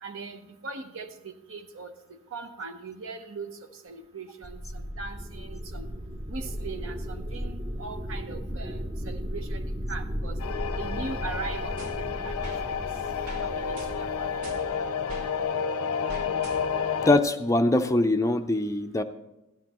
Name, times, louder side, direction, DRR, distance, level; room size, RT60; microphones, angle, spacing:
voice 1, 0.0-3.6 3.8-5.9 6.3-10.4 10.8-12.4 12.6-12.8 13.4-14.4, right 4 dB, 65° right, 7 dB, 0.9 m, -40 dB
sound 1, 4.4-15.0, equal, 20° right, 0.7 m, -35 dB
sound 2, 10.4-17.2, left 6 dB, 80° left, 0.5 m, -30 dB
sound 3, 11.8-12.6 13.2-13.5 13.8-15.3 16.1-16.9, right 1 dB, 90° right, 2.1 m, -42 dB
voice 2, 17.1-19.0, left 2 dB, 15° left, 7 dB, 0.4 m, -23 dB
16.0 x 12.0 x 3.0 m, 0.96 s
head